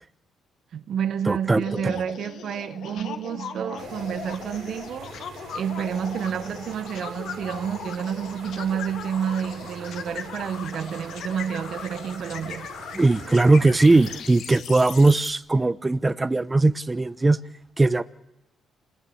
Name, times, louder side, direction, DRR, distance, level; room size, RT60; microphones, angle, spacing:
voice 1, 0.7-5.1 5.5-12.7, right 8 dB, 65° right, 1.0 m, -29 dB
voice 2, 1.2-1.9 12.9-17.4 17.8-18.0, right 2 dB, 20° right, 0.9 m, -19 dB
sound 1, 1.6-15.3, left 8 dB, 70° left, 1.9 m, -39 dB
sound 2, 3.8-14.2, right 7 dB, 80° right, 4.7 m, -44 dB
26.5 x 20.0 x 8.6 m
cardioid pair, 90°, 0 cm